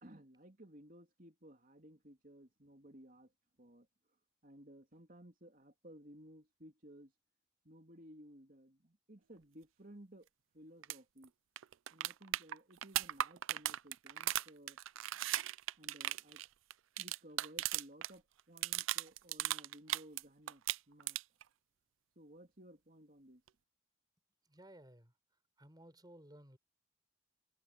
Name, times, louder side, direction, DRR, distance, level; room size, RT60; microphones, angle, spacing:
voice 1, 0.0-3.3 3.6-3.9 4.4-7.1 7.6-10.3 10.5-11.3 11.9-14.8 15.8-16.4 17.0-21.2 22.1-23.4, right 1 dB, 45° right, 3.3 m, -57 dB
sound 1, 10.8-11.0 11.2-11.3 11.6-18.1 18.4-20.2 20.5-21.4 23.5-23.6, right 14 dB, 85° right, 0.4 m, -37 dB
voice 2, 24.4-25.1 25.6-26.6, right 1 dB, 20° right, 4.9 m, -57 dB
head